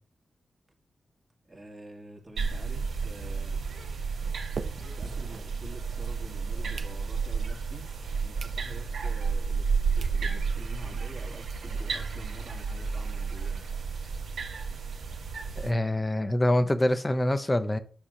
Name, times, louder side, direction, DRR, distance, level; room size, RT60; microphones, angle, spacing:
voice 1, 1.4-3.6 4.9-7.9 8.2-13.7, right 1 dB, 20° right, 2.0 m, -47 dB
sound 1, 2.2-6.1 6.5-7.5 8.0-8.1 8.4-8.6 9.0-9.1 9.7-9.8 10.0-10.2 10.6-10.7 10.9-11.0 11.3-11.4 11.7-12.9, right 5 dB, 55° right, 0.7 m, -44 dB
sound 2, 2.4-15.7, right 5 dB, 85° right, 1.9 m, -32 dB
voice 2, 15.6-17.8, left 1 dB, 20° left, 0.7 m, -25 dB
10.0 x 3.4 x 6.4 m
wide cardioid pair, 135°, 0 cm